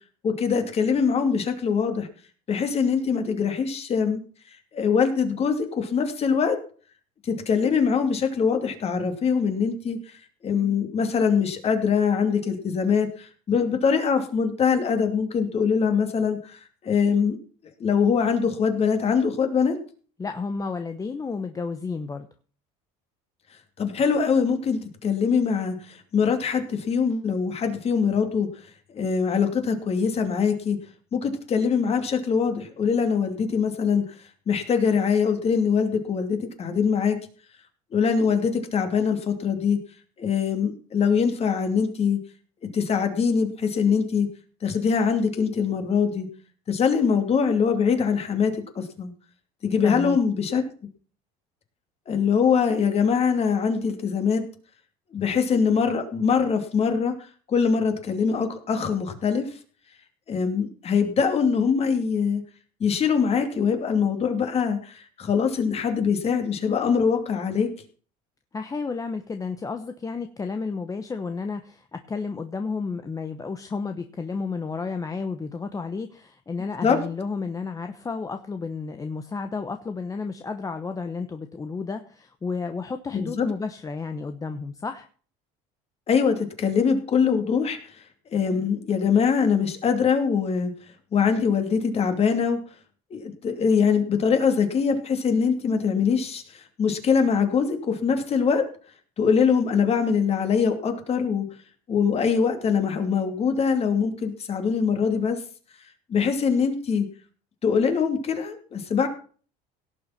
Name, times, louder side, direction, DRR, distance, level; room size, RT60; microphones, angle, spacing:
voice 1, 0.2-2.1 2.5-4.2 4.7-6.6 7.2-10.0 10.4-17.4 17.8-19.8 23.8-28.5 28.9-30.8 31.1-34.0 34.5-37.2 37.9-39.8 40.2-42.2 42.7-44.3 44.6-46.3 46.7-49.1 49.6-50.6 52.1-54.4 55.1-57.1 57.5-59.5 60.3-62.4 62.8-67.7 76.8-77.0 83.1-83.5 86.1-88.0 88.3-90.7 91.1-92.6 93.1-98.7 99.2-101.5 101.9-105.4 106.1-107.1 107.6-109.1, left 6 dB, 35° left, 7 dB, 2.6 m, -23 dB
voice 2, 20.2-22.3 49.8-50.2 68.5-85.1, left 4 dB, 20° left, 7 dB, 1.0 m, -32 dB
17.5 x 7.0 x 5.8 m, 0.41 s
cardioid pair, 125°, 18 cm